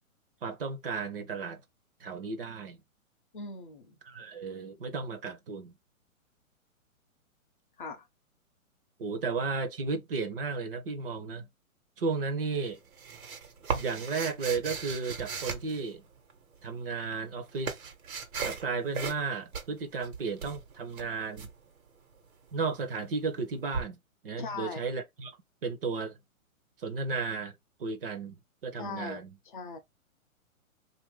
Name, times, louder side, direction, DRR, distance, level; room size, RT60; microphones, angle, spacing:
voice 1, 0.4-1.6 2.0-2.8 4.0-5.7 9.0-11.5 12.0-12.8 13.7-16.0 16.6-17.9 18.4-21.5 22.5-24.0 24.2-25.3 25.6-26.2 26.8-27.5 27.8-28.4 28.6-29.3, right 4 dB, 45° right, 0.6 m, -34 dB
voice 2, 3.3-4.0 7.8-8.0 9.0-9.2 24.4-24.8 28.8-29.8, left 4 dB, 35° left, 0.5 m, -40 dB
sound 1, 12.5-16.4 17.1-18.7 18.9-19.3 19.5-21.5 23.7-23.8, right 5 dB, 75° right, 1.2 m, -37 dB
2.8 x 2.6 x 3.2 m
hypercardioid pair, 160°, 42 cm